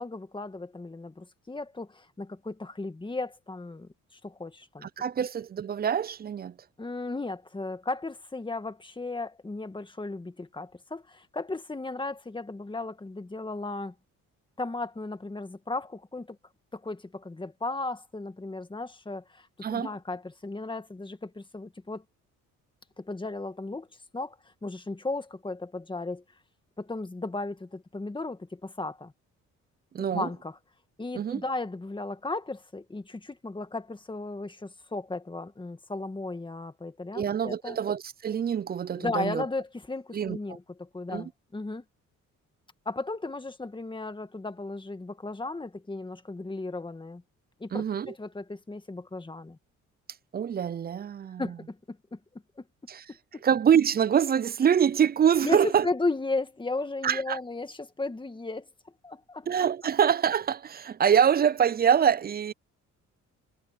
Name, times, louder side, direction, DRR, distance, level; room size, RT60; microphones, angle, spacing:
voice 1, 0.0-4.9 6.8-13.9 14.6-16.4 16.7-22.0 23.0-23.9 24.1-26.2 26.8-29.1 30.1-30.6 31.0-37.8 39.0-41.8 42.9-47.2 47.6-49.6 51.4-52.6 53.3-53.4 55.4-58.7 59.0-59.5, left 3 dB, 15° left, 1.9 m, -35 dB
voice 2, 4.8-6.5 19.6-19.9 29.9-30.3 31.1-31.4 37.1-39.4 40.1-40.4 41.1-41.3 47.7-48.1 50.3-51.4 52.9-53.0 53.4-55.9 57.0-57.4 59.5-62.5, right 8 dB, 30° right, 0.4 m, -25 dB
cardioid pair, 90°, 30 cm